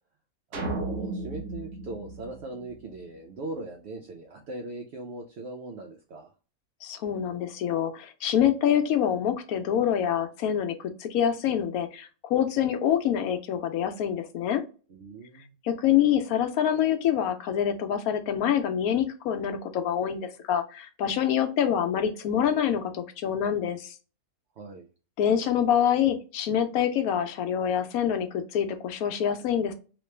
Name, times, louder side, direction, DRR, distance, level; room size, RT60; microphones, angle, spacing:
voice 1, 0.5-6.3 14.9-15.6 24.6-24.9, right 2 dB, 60° right, 3 dB, 0.8 m, -40 dB
sound 1, 0.5-3.0, right 2 dB, 80° right, 1.3 m, -34 dB
voice 2, 6.8-14.6 15.6-23.9 25.2-29.7, left 9 dB, 90° left, 8 dB, 1.1 m, -26 dB
3.1 x 2.9 x 3.2 m, 0.35 s
omnidirectional pair, 1.5 m